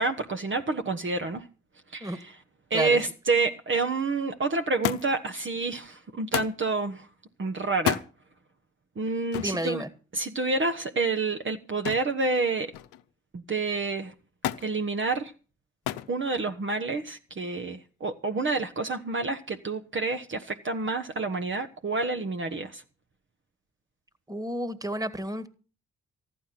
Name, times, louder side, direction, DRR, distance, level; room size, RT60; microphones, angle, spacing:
voice 1, 0.0-1.5 1.9-2.4 2.7-7.1 7.4-8.0 9.0-9.8 10.1-12.7 13.3-14.1 14.6-15.3 16.1-22.8, right 3 dB, 40° right, 1.1 m, -28 dB
Thump thud, 4.8-5.3 6.3-6.6 7.7-8.1 9.3-9.6 11.9-12.2 12.5-13.1 14.4-14.7 15.9-16.1 17.1-17.6 18.5-18.6, left 12 dB, 85° left, 0.7 m, -31 dB
voice 2, 9.4-9.9 24.3-25.5, right 1 dB, 10° right, 1.8 m, -31 dB
14.5 x 11.5 x 5.9 m
supercardioid pair, 45°, 30 cm